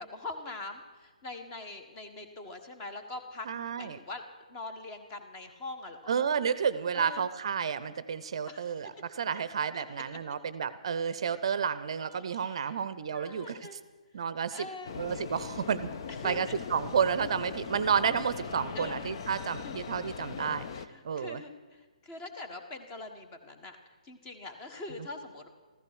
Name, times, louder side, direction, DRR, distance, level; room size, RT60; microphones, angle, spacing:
voice 1, 0.0-3.5 3.8-4.2 4.5-6.1 6.9-7.3 8.5-8.7 9.7-9.8 11.9-12.8 13.1-13.8 14.5-14.9 16.1-16.5 18.7-19.1 19.6-19.7 20.9-21.5 22.0-23.8 24.0-25.5, left 2 dB, 20° left, 7 dB, 1.6 m, -43 dB
voice 2, 3.5-4.0 6.1-13.6 14.1-14.7 15.0-15.9 16.2-20.7 21.0-21.4, right 7 dB, 45° right, 14 dB, 0.7 m, -31 dB
sound 1, 14.8-20.9, left 6 dB, 40° left, 0.8 m, -40 dB
15.0 x 14.5 x 6.2 m, 1.3 s
figure-of-eight pair, 135°, 4 cm